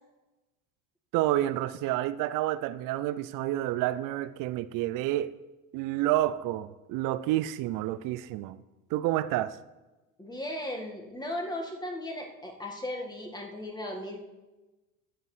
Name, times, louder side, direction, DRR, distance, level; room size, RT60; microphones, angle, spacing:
voice 1, 1.1-5.3 5.7-8.6 8.9-9.6, right 14 dB, 50° right, 15 dB, 0.6 m, -29 dB
voice 2, 10.2-14.2, left 1 dB, 10° left, 2 dB, 1.9 m, -36 dB
16.5 x 6.5 x 3.3 m, 1.1 s
hypercardioid pair, 70°, 42 cm